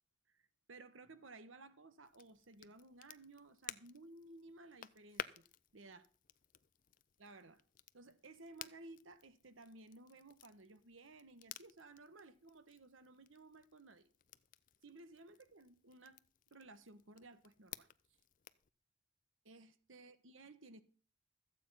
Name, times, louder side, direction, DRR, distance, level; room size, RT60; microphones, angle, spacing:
voice 1, 0.7-5.5 5.7-6.1 7.2-7.6 7.9-14.1 14.8-16.2 16.5-17.9 19.4-20.8, right 2 dB, 90° right, 1.2 m, -57 dB
Crackle, 2.0-18.7, left 9 dB, 45° left, 0.5 m, -55 dB
14.0 x 8.5 x 5.6 m
head